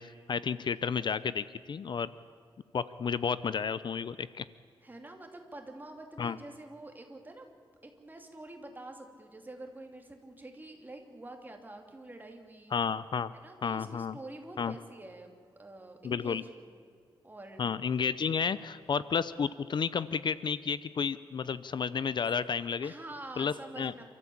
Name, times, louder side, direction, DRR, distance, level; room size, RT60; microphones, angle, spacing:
voice 1, 0.0-2.1 2.7-4.4 6.2-6.4 12.7-13.3 13.6-14.2 14.6-14.7 16.0-16.4 17.6-22.9 23.4-23.9, left 6 dB, 55° left, 16 dB, 0.6 m, -32 dB
voice 2, 4.8-12.7 13.3-16.7 17.2-17.7 22.8-24.0, right 2 dB, 20° right, 3 dB, 2.9 m, -47 dB
28.0 x 14.0 x 8.7 m, 2.3 s
wide cardioid pair, 125°, 9 cm